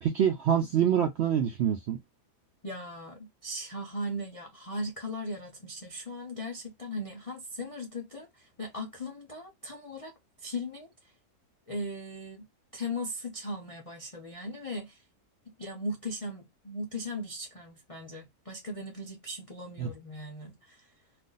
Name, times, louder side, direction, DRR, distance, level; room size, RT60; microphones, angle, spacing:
voice 1, 0.0-2.0 19.8-19.9, right 9 dB, 70° right, 0.6 m, -26 dB
voice 2, 2.6-10.1 10.4-11.1 11.7-12.5 12.7-15.0 15.5-20.9, left 1 dB, 55° left, 0.3 m, -38 dB
2.5 x 2.5 x 3.7 m
omnidirectional pair, 1.6 m